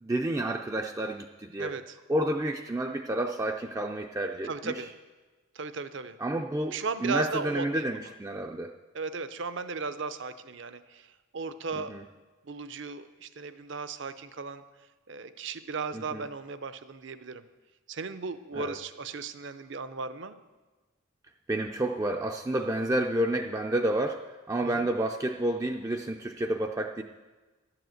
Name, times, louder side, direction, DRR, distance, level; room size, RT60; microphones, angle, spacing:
voice 1, 0.0-1.8 2.1-4.8 6.2-8.7 11.9-12.0 15.9-16.2 18.5-18.7 21.5-27.0, right 1 dB, 15° right, 3 dB, 0.4 m, -30 dB
voice 2, 1.6-2.0 4.4-4.9 5.5-6.2 6.7-8.1 8.9-11.1 11.3-11.9 12.4-14.6 15.1-17.4 17.9-20.4 24.6-24.9, right 4 dB, 60° right, 12 dB, 0.6 m, -36 dB
11.5 x 7.8 x 7.8 m, 1.3 s
head